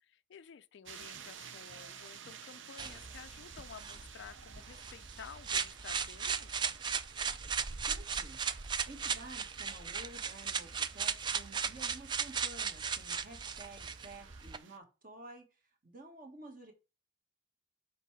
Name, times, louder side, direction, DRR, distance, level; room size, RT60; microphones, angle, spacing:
voice 1, 0.0-6.6, left 7 dB, 60° left, 0.4 m, -52 dB
sound 1, 0.8-14.8, right 7 dB, 65° right, 0.6 m, -53 dB
sound 2, 2.8-14.6, right 6 dB, 20° right, 0.3 m, -37 dB
voice 2, 7.9-8.4 8.9-15.5 15.8-16.7, right 2 dB, 45° right, 1.6 m, -51 dB
6.6 x 4.5 x 4.9 m
head